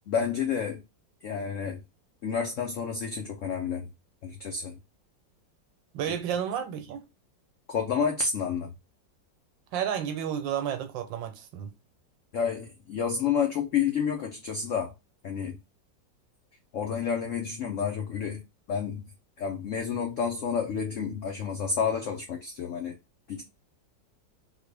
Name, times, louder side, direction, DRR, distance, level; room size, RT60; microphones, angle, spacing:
voice 1, 0.1-0.8 1.2-1.8 2.2-3.9 4.2-4.8 7.7-8.7 12.3-14.9 15.2-15.6 16.7-18.4 18.7-19.0 19.4-23.0 23.3-23.4, left 6 dB, 80° left, 0.6 m, -30 dB
voice 2, 5.9-7.0 9.7-11.7, right 9 dB, 90° right, 1.4 m, -31 dB
3.7 x 2.2 x 3.2 m
omnidirectional pair, 2.0 m